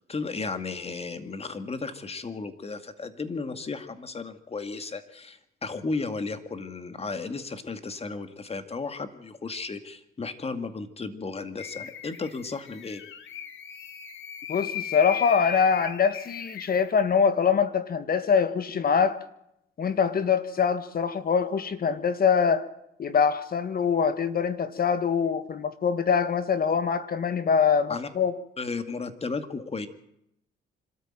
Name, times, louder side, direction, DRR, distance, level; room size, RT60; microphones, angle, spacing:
voice 1, 0.1-13.0 27.9-28.1 28.6-29.9, left 4 dB, 30° left, 9 dB, 2.3 m, -34 dB
sound 1, 11.6-17.1, left 9 dB, 75° left, 2.0 m, -37 dB
voice 2, 14.5-19.2 19.8-22.7 23.0-28.3, left 6 dB, 50° left, 12 dB, 1.7 m, -24 dB
25.5 x 13.5 x 9.0 m, 0.80 s
cardioid pair, 90°, 20 cm